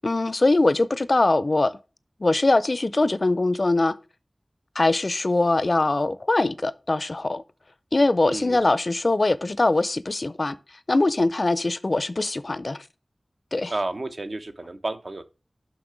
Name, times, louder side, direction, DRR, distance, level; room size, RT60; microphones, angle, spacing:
voice 1, 0.0-1.8 2.2-4.0 4.8-7.4 7.9-10.6 10.9-12.8 13.5-13.8, left 2 dB, 55° left, 0.4 m, -22 dB
voice 2, 8.2-8.7 13.7-15.2, right 2 dB, 65° right, 0.7 m, -31 dB
6.0 x 5.7 x 5.0 m
wide cardioid pair, 55°, 0 cm